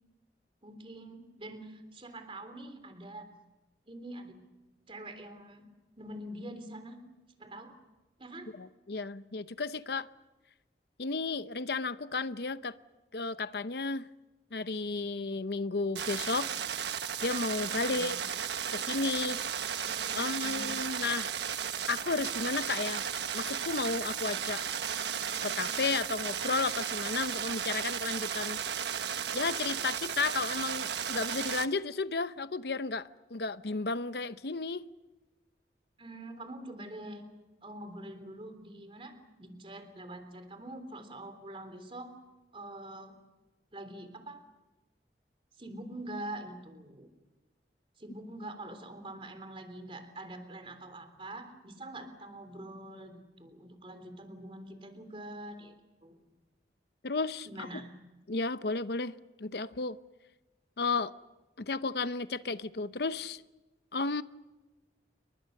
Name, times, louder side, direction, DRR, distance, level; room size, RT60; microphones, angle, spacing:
voice 1, 0.6-3.3 3.9-4.4 4.9-5.7 6.0-7.0 7.4-7.8 8.2-8.5 17.8-18.2 20.2-20.8 36.0-37.3 37.6-42.2 42.5-43.2 43.7-44.4 45.6-47.1 48.0-55.7 56.0-56.2 57.4-57.9, right 1 dB, 30° right, 3.5 m, -45 dB
voice 2, 8.6-10.1 11.0-12.8 13.1-14.1 14.5-16.5 17.2-18.2 18.7-19.7 20.1-21.3 21.9-23.0 23.3-24.6 25.4-28.6 29.3-34.9 57.0-57.7 58.3-60.0 60.8-61.1 61.6-63.4 63.9-64.2, left 3 dB, 65° left, 0.8 m, -33 dB
sound 1, 16.0-31.7, right 8 dB, 80° right, 1.3 m, -34 dB
29.5 x 23.5 x 6.6 m
head